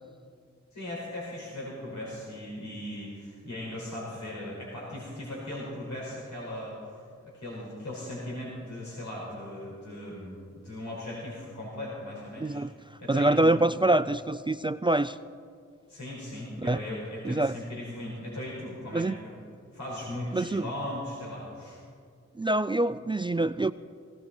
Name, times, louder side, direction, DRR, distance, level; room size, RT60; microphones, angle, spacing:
voice 1, 0.7-6.8 7.2-12.6 13.0-13.5 15.9-19.4 19.7-21.8, left 1 dB, 75° left, -5 dB, 5.1 m, -38 dB
voice 2, 12.4-12.7 13.1-15.2 16.6-16.8 17.2-17.5 18.9-19.1 20.3-20.7 22.4-23.7, right 2 dB, 15° right, 14 dB, 0.3 m, -25 dB
18.0 x 17.0 x 4.4 m, 2.2 s
wide cardioid pair, 60°, 29 cm